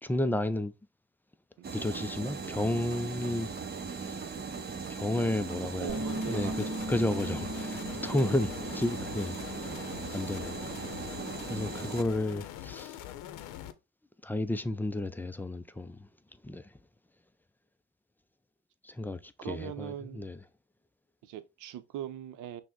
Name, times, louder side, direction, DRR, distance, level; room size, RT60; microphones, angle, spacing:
voice 1, 0.0-0.7 1.7-3.5 3.9-4.2 4.9-5.9 6.3-6.5 6.9-9.7 10.1-10.6 11.5-13.0 14.2-16.1 16.4-16.7 18.8-20.4, left 1 dB, 5° left, 0.3 m, -32 dB
sound 1, 1.6-12.0, right 5 dB, 30° right, 0.9 m, -39 dB
voice 2, 5.5-6.9 8.1-8.3 10.4-10.5 19.4-20.3 21.2-22.6, right 11 dB, 75° right, 0.7 m, -41 dB
sound 2, 5.9-13.7, left 11 dB, 85° left, 0.7 m, -43 dB
Bass guitar, 5.9-10.2 10.5-12.1, right 1 dB, 10° right, 2.0 m, -41 dB
6.0 x 2.1 x 3.6 m
cardioid pair, 105°, 31 cm